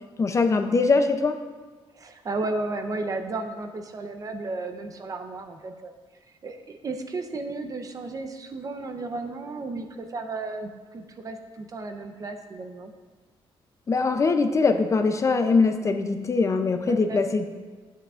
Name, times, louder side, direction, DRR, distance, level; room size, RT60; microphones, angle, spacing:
voice 1, 0.2-1.4 13.9-17.4, left 4 dB, 30° left, 7 dB, 0.5 m, -22 dB
voice 2, 1.9-5.9 6.4-12.9 16.9-17.2, right 3 dB, 35° right, 6 dB, 0.7 m, -34 dB
12.5 x 8.4 x 2.5 m, 1.4 s
wide cardioid pair, 145°, 10 cm